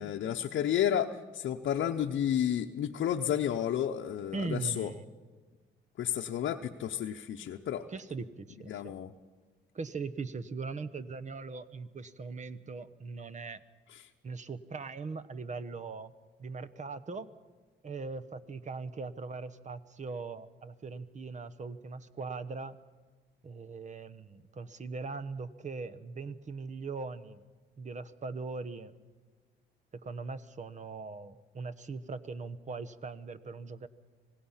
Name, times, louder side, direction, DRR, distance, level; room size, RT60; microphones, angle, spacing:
voice 1, 0.0-4.9 6.0-7.9 8.7-9.1 13.9-14.0, left 10 dB, 65° left, 3 dB, 0.8 m, -31 dB
voice 2, 4.3-5.1 7.9-8.9 9.7-13.6 14.2-16.1 16.4-17.3 17.8-22.8 23.4-27.4 27.8-28.9 29.9-33.9, right 4 dB, 35° right, 13 dB, 1.1 m, -40 dB
25.5 x 18.0 x 5.7 m, 1.4 s
cardioid pair, 90°, 20 cm